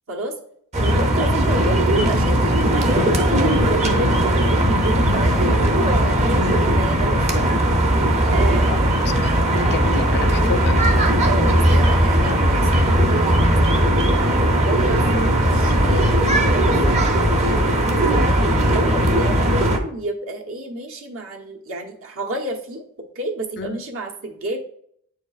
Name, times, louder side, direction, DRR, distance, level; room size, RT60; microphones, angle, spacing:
sound 1, 0.7-19.8, right 1 dB, 30° right, 0.7 m, -18 dB
voice 1, 0.8-7.6 8.3-9.0 11.2-18.1 18.6-22.9 23.1-24.6, right 1 dB, 65° right, 1 dB, 1.1 m, -30 dB
voice 2, 9.1-10.9 23.6-23.8, left 6 dB, 50° left, 11 dB, 0.4 m, -30 dB
8.8 x 4.6 x 2.4 m, 0.66 s
head